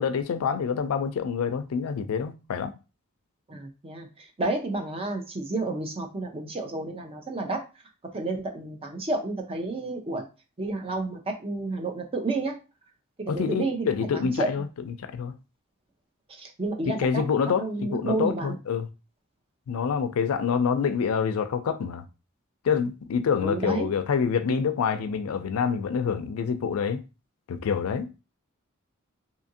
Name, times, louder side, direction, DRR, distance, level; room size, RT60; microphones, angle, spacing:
voice 1, 0.0-2.7 13.3-15.4 16.9-18.9 19.7-22.0 22.6-27.0 27.5-28.1, left 6 dB, 85° left, 0.4 m, -27 dB
voice 2, 3.5-7.6 8.1-10.2 10.6-12.6 13.2-13.9 14.1-14.5 16.3-17.2 17.6-18.6 23.4-23.9, right 2 dB, 25° right, 0.6 m, -30 dB
2.7 x 2.5 x 2.6 m
head